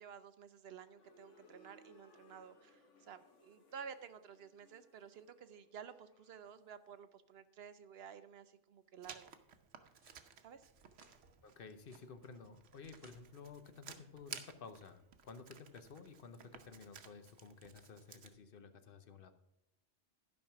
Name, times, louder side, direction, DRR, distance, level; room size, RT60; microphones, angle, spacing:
voice 1, 0.0-9.3 10.4-10.7, right 7 dB, 65° right, 12 dB, 0.8 m, -53 dB
sound 1, 0.9-6.8, left 1 dB, 90° left, 1.5 m, -66 dB
sound 2, 8.6-9.2 9.9-10.2 10.7-11.2 11.5-12.1 12.7-13.2, right 2 dB, 30° right, 1.4 m, -70 dB
Writing, 9.0-18.3, right 7 dB, 90° right, 1.2 m, -56 dB
voice 2, 11.4-19.3, left 5 dB, 55° left, 9 dB, 0.9 m, -53 dB
12.0 x 5.4 x 5.8 m, 0.86 s
omnidirectional pair, 1.2 m